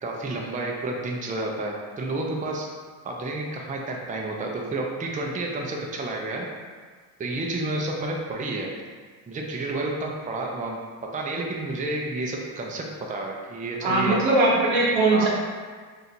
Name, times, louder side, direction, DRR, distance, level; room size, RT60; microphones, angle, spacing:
voice 1, 0.0-2.7 3.0-6.5 7.2-8.7 9.3-14.2 15.1-15.3, right 2 dB, 20° right, 0 dB, 0.4 m, -30 dB
voice 2, 13.8-15.3, right 2 dB, 80° right, -3 dB, 1.0 m, -20 dB
2.7 x 2.6 x 4.3 m, 1.5 s
cardioid pair, 80°, 46 cm